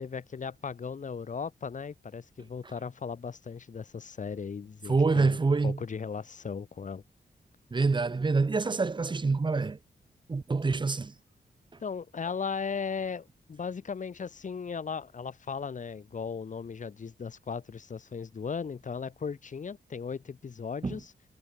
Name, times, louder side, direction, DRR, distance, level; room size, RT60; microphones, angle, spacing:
voice 1, 0.0-5.4 5.6-7.0 11.8-21.1, left 6 dB, 45° left, 6.5 m, -37 dB
voice 2, 4.9-5.8 7.7-9.8 10.3-11.1 20.8-20.9, right 4 dB, 25° right, 2.7 m, -26 dB
wide cardioid pair, 180°, 17 cm